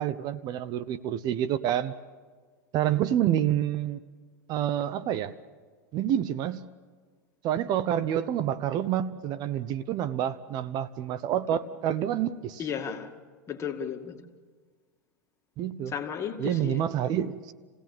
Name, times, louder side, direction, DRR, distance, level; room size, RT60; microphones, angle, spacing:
voice 1, 0.0-1.9 2.7-4.0 4.5-5.3 5.9-6.7 7.4-12.7 15.6-15.9 16.4-17.5, right 11 dB, 45° right, 0.8 m, -28 dB
voice 2, 12.6-13.1 13.5-14.2 15.9-16.9, left 7 dB, 30° left, 2.2 m, -34 dB
28.5 x 17.0 x 7.4 m
hypercardioid pair, 110°, 10 cm